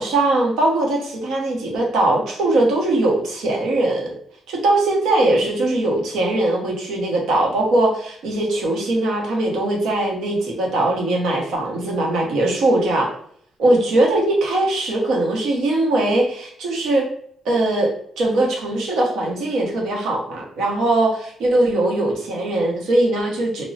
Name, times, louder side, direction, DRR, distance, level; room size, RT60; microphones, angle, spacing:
voice 1, 0.0-4.1 4.5-13.1 13.6-17.1 17.4-17.9 18.2-23.7, right 2 dB, 85° right, 0 dB, 0.8 m, -20 dB
2.9 x 2.1 x 2.6 m, 0.65 s
cardioid pair, 140°, 0 cm